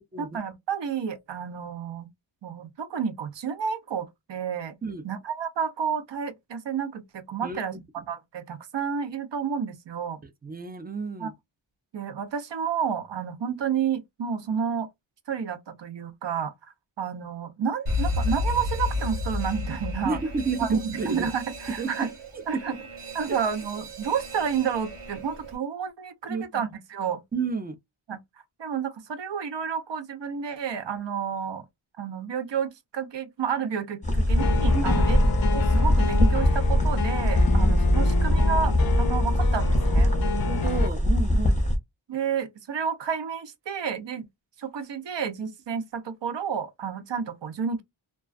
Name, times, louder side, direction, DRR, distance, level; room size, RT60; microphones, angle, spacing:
voice 1, 0.2-2.1 2.4-4.8 5.0-10.2 11.2-11.3 11.9-14.9 15.3-16.5 17.0-20.2 20.6-22.1 22.5-22.8 23.1-27.2 28.1-28.2 28.6-31.6 32.0-35.2 35.5-40.1 42.1-44.3 44.6-47.8, right 7 dB, 60° right, 0.6 m, -30 dB
voice 2, 10.2-11.3 20.0-21.3 21.8-21.9 22.5-22.6 26.3-26.6 27.3-27.8 34.7-35.0 37.5-37.8 38.0-38.1 40.3-41.5, right 4 dB, 20° right, 0.4 m, -31 dB
Alarm, 17.9-25.6, left 2 dB, 85° right, 1.0 m, -32 dB
sound 1, 34.0-41.8, left 1 dB, 15° left, 0.7 m, -22 dB
sound 2, 34.4-40.9, left 6 dB, 50° left, 0.4 m, -30 dB
2.3 x 2.3 x 2.4 m
wide cardioid pair, 60°, 49 cm